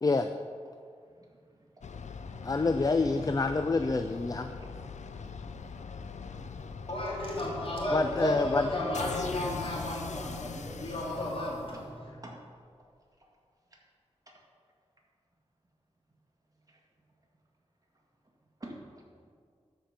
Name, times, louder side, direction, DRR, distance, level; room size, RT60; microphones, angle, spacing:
voice 1, 1.5-1.8 2.3-2.4 8.1-8.2 10.5-10.9 11.7-11.8 12.2-12.3 16.7-16.8 18.6-19.3, right 1 dB, 30° right, -2 dB, 1.9 m, -48 dB
sound 1, 1.8-12.1, left 5 dB, 90° left, 0.5 m, -41 dB
voice 2, 2.4-4.5 7.9-8.7, left 3 dB, 30° left, 8 dB, 0.4 m, -27 dB
voice 3, 6.9-11.8, left 1 dB, 50° left, -4 dB, 2.6 m, -33 dB
12.5 x 5.2 x 5.8 m, 2.1 s
wide cardioid pair, 90°, 12 cm